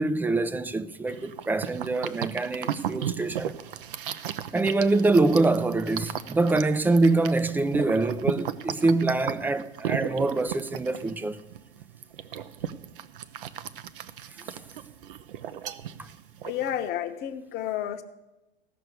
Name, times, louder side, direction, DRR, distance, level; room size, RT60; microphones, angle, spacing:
voice 1, 0.0-3.6 4.5-11.4 16.0-16.1, right 3 dB, 5° right, 0.4 m, -25 dB
sound 1, 1.1-16.9, right 10 dB, 60° right, 0.7 m, -36 dB
voice 2, 16.4-18.0, left 11 dB, 35° left, 1.0 m, -31 dB
16.0 x 6.6 x 8.1 m
figure-of-eight pair, 90°, 30 cm